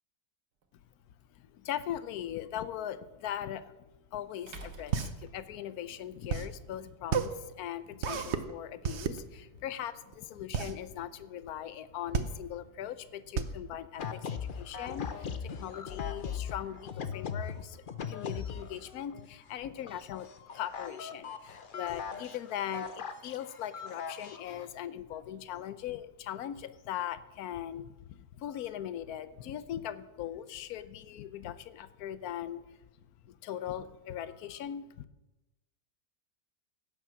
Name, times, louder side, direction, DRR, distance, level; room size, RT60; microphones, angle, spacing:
sound 1, 0.6-0.7 3.3-3.4 4.5-6.1, right 3 dB, 80° right, 1.9 m, -49 dB
voice 1, 1.3-3.8 4.1-32.8 33.2-35.0, left 10 dB, 75° left, 14 dB, 1.2 m, -40 dB
sound 2, 4.4-14.8, right 7 dB, 50° right, 1.0 m, -34 dB
sound 3, 14.0-19.3 19.5-24.7, left 6 dB, 45° left, 0.7 m, -40 dB
16.0 x 7.3 x 6.2 m, 1.1 s
omnidirectional pair, 1.7 m